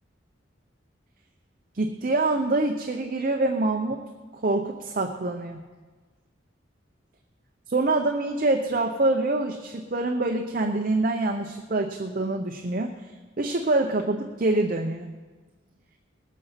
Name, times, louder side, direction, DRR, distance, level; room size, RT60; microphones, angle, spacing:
voice 1, 1.7-4.0 4.3-5.6 7.7-12.9 13.4-15.1, right 2 dB, 45° right, 4 dB, 0.7 m, -25 dB
19.5 x 8.4 x 5.8 m, 1.4 s
head